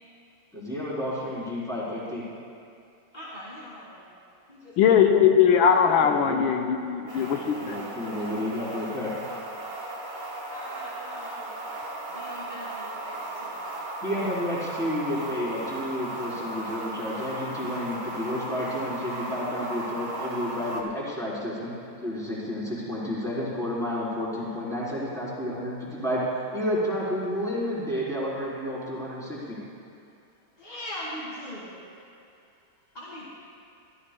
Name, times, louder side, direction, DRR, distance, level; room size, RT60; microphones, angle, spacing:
voice 1, 0.5-2.2 5.9-6.4 7.6-9.1 14.0-21.7 22.0-29.6, equal, ahead, -8 dB, 3.6 m, -31 dB
voice 2, 3.1-4.1 4.5-5.0 5.8-6.1 10.1-13.7 30.6-31.9 32.9-33.3, equal, 25° left, -8 dB, 1.9 m, -42 dB
voice 3, 4.8-7.8, left 8 dB, 90° left, 4 dB, 1.6 m, -20 dB
sound 1, 7.1-20.8, right 1 dB, 35° right, 1.5 m, -36 dB
24.0 x 14.0 x 2.2 m, 2.5 s
omnidirectional pair, 2.1 m